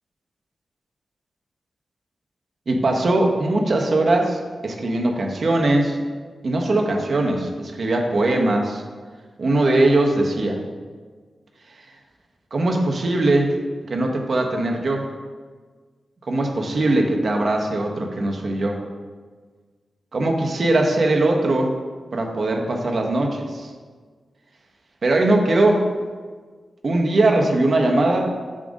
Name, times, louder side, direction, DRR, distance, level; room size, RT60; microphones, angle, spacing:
voice 1, 2.7-6.0 6.4-8.8 9.4-10.6 12.5-13.5 13.9-15.0 16.3-18.8 20.1-21.7 22.1-23.7 25.0-25.9 26.8-28.3, right 2 dB, 60° right, 2 dB, 0.8 m, -20 dB
7.3 x 2.5 x 5.1 m, 1.5 s
cardioid pair, 60°, 0 cm